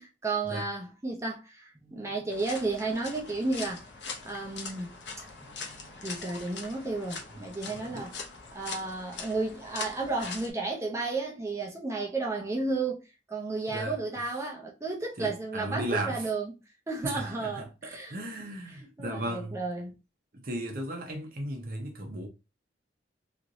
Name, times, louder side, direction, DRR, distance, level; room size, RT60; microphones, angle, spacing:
voice 1, 0.0-3.9 4.2-5.0 5.4-8.2 8.5-13.0 13.3-16.5 16.9-18.1 19.0-20.0, right 3 dB, 15° right, 0.5 m, -33 dB
sound 1, 2.3-10.5, left 4 dB, 65° left, 0.7 m, -42 dB
voice 2, 7.7-8.1 13.7-14.0 15.2-16.3 17.0-19.6 20.3-22.3, right 1 dB, 50° right, 0.8 m, -36 dB
3.1 x 2.9 x 2.6 m
head